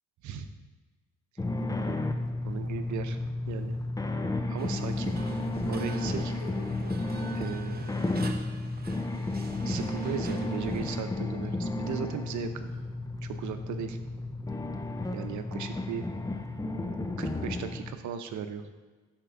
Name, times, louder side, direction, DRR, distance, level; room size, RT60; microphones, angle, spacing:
sound 1, 1.4-17.9, left 2 dB, 10° left, 0.6 m, -32 dB
voice 1, 2.4-3.2 3.5-3.8 4.5-5.2 5.6-6.3 7.3-7.9 9.6-12.7 13.2-14.0 15.1-16.0 17.2-18.7, right 7 dB, 70° right, 8 dB, 0.8 m, -37 dB
sound 2, 4.6-11.0, right 4 dB, 30° right, 0.8 m, -47 dB
sound 3, 4.8-8.2 8.5-13.0, left 3 dB, 50° left, 1.6 m, -53 dB
12.5 x 4.5 x 3.8 m, 1.3 s
cardioid pair, 90°, 30 cm